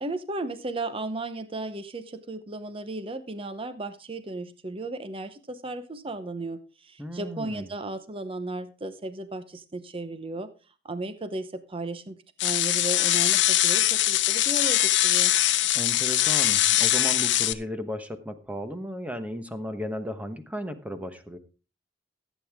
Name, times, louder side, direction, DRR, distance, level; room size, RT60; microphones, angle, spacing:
voice 1, 0.0-10.5 10.8-12.2 12.4-15.3, right 2 dB, 30° right, 11 dB, 0.8 m, -35 dB
voice 2, 7.0-7.7 15.7-21.4, equal, 10° right, 8 dB, 1.1 m, -35 dB
sound 1, 12.4-17.5, left 14 dB, 70° left, 0.7 m, -22 dB
15.0 x 8.4 x 3.6 m, 0.34 s
head